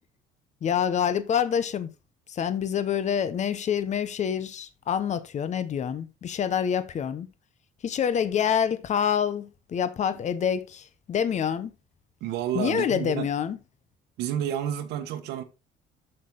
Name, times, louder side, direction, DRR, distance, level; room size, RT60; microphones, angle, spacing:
voice 1, 0.6-1.9 2.3-7.3 7.8-11.7 12.5-13.6, left 8 dB, 45° left, 0.9 m, -27 dB
voice 2, 12.2-13.3 14.2-15.4, right 10 dB, 85° right, 1.2 m, -30 dB
7.5 x 6.8 x 3.8 m
cardioid pair, 110°, 17 cm